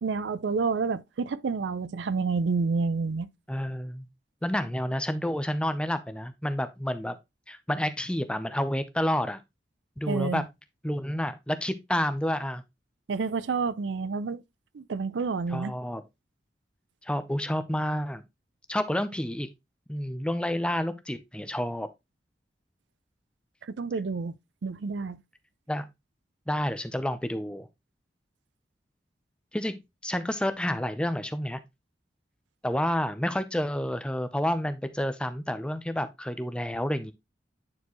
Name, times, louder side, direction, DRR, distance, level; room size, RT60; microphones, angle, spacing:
voice 1, 0.0-3.3 10.1-10.4 13.1-14.4 14.7-15.7 23.6-24.3 24.6-25.2, right 4 dB, 85° right, 0.4 m, -29 dB
voice 2, 3.5-4.1 4.4-7.2 7.5-9.4 10.0-10.4 10.8-12.6 15.5-16.0 17.0-18.2 18.7-19.5 19.9-21.9 25.7-25.9 26.5-27.7 29.5-31.6 32.6-37.1, left 1 dB, 5° left, 0.6 m, -29 dB
9.6 x 4.4 x 3.0 m
head